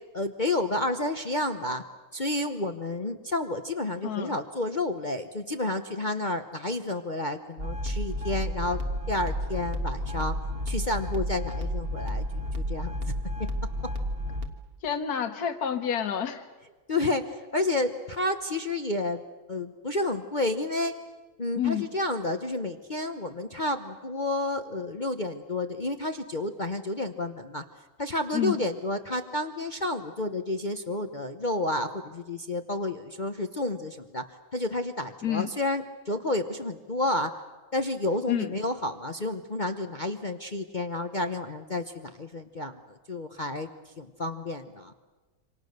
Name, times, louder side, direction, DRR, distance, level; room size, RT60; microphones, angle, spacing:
voice 1, 0.1-1.8 2.1-8.8 9.1-10.3 10.7-12.2 12.6-13.1 16.9-19.2 19.5-20.9 21.4-27.6 28.0-34.2 34.5-37.3 37.7-43.7 44.0-44.9, left 2 dB, 35° left, 6 dB, 0.7 m, -30 dB
voice 2, 4.0-4.4 14.8-16.4 21.5-21.9 28.3-28.6 35.2-35.5 38.3-38.5, left 8 dB, 55° left, 7 dB, 1.9 m, -29 dB
sound 1, 7.6-14.5, equal, 30° right, 1.6 m, -31 dB
27.5 x 25.5 x 6.7 m, 1.2 s
omnidirectional pair, 2.1 m